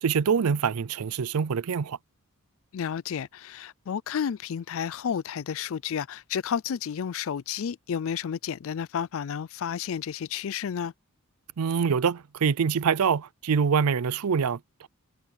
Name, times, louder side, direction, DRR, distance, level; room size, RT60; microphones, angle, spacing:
voice 1, 0.0-2.0 11.6-14.9, right 6 dB, 80° right, 0.5 m, -25 dB
voice 2, 2.7-10.9, left 7 dB, 60° left, 0.4 m, -31 dB
head